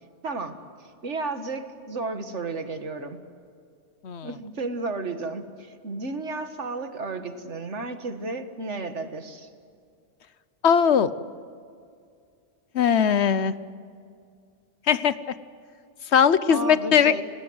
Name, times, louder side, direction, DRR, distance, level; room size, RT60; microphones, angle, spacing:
voice 1, 0.2-3.2 4.2-9.5 16.5-17.2, right 3 dB, 80° right, 8 dB, 2.0 m, -33 dB
voice 2, 10.6-11.1 12.7-13.5 14.9-15.1 16.1-17.1, left 7 dB, 70° left, 15 dB, 1.1 m, -19 dB
28.5 x 19.5 x 7.9 m, 2.3 s
omnidirectional pair, 1.2 m